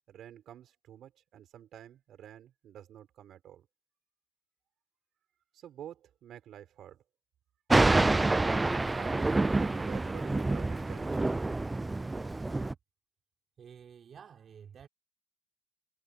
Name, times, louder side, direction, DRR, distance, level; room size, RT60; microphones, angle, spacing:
voice 1, 0.1-3.7 5.5-7.0 8.9-11.2, right 11 dB, 75° right, 6.1 m, -49 dB
Thunder, 7.7-12.7, right 2 dB, 20° right, 0.4 m, -27 dB
voice 2, 13.6-14.9, right 7 dB, 55° right, 4.2 m, -51 dB
cardioid pair, 90°, 0 cm